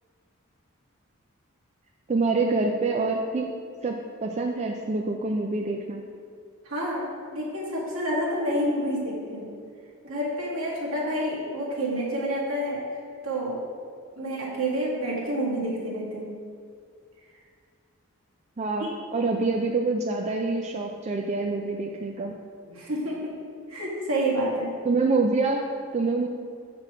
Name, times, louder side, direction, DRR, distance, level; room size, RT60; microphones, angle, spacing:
voice 1, 2.1-3.5 3.8-6.0 18.6-22.3 24.8-26.3, right 3 dB, 30° right, 1 dB, 0.4 m, -26 dB
voice 2, 6.6-9.5 10.0-12.8 13.2-13.6 14.2-16.3 22.7-23.4 23.7-24.7, right 1 dB, 70° right, -5 dB, 2.1 m, -28 dB
7.7 x 5.9 x 4.9 m, 2.3 s
head